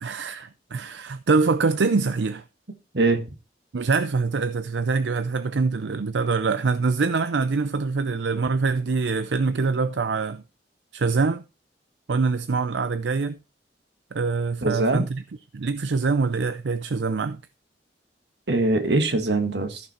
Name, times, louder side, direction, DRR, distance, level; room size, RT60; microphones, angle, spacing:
voice 1, 0.0-2.4 3.7-10.4 10.9-11.4 12.1-13.4 14.1-15.2 15.5-17.4, right 4 dB, 85° right, 0.5 m, -24 dB
voice 2, 14.6-15.1 18.5-19.8, right 2 dB, 70° right, 1.7 m, -22 dB
14.5 x 6.0 x 4.3 m
head